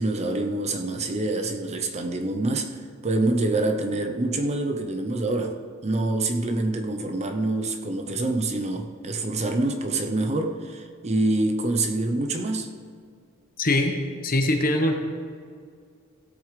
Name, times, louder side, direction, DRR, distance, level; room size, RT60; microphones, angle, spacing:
voice 1, 0.0-2.8 3.0-12.7, right 2 dB, 30° right, 5 dB, 0.6 m, -26 dB
voice 2, 13.6-13.9 14.2-14.9, left 1 dB, 45° left, 3 dB, 1.1 m, -22 dB
16.5 x 8.5 x 3.3 m, 2.1 s
head